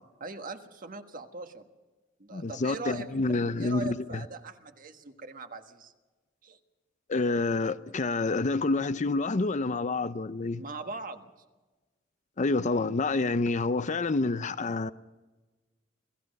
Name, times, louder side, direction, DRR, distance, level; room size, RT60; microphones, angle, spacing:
voice 1, 0.2-1.7 2.2-5.9 6.4-6.6 10.6-11.3, right 3 dB, 45° right, 1.5 m, -41 dB
voice 2, 2.3-4.2 7.1-10.6 12.4-14.9, left 3 dB, 40° left, 0.6 m, -28 dB
28.0 x 18.0 x 5.4 m
head